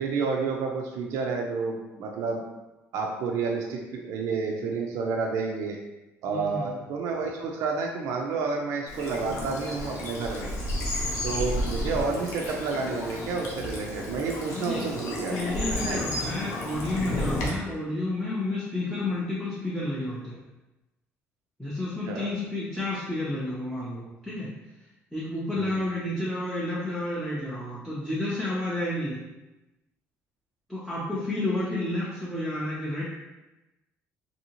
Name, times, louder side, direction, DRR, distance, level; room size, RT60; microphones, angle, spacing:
voice 1, 0.0-2.4 2.9-5.8 6.2-10.5 11.2-15.4 15.7-16.1 22.1-22.3 25.6-25.8, right 4 dB, 70° right, 1 dB, 0.4 m, -30 dB
voice 2, 6.3-6.8 14.5-14.9 15.3-20.4 21.6-24.5 25.1-29.2 30.7-33.0, left 1 dB, ahead, -8 dB, 0.4 m, -31 dB
Bird vocalization bird call bird song / Stream, 8.9-17.5, left 1 dB, 75° left, 0.7 m, -32 dB
2.7 x 2.6 x 2.8 m, 1.0 s
cardioid pair, 180°, 5 cm